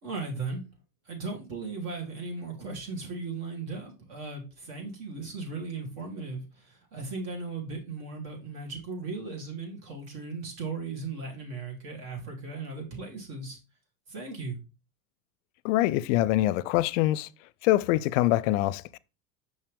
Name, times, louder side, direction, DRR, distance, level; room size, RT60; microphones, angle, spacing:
voice 1, 0.0-0.6 1.0-13.6 14.1-14.6, right 4 dB, 55° right, 3.0 m, -37 dB
voice 2, 15.6-17.3 17.6-19.0, left 15 dB, 55° left, 0.5 m, -24 dB
5.8 x 5.6 x 3.4 m
hypercardioid pair, 90°, 44 cm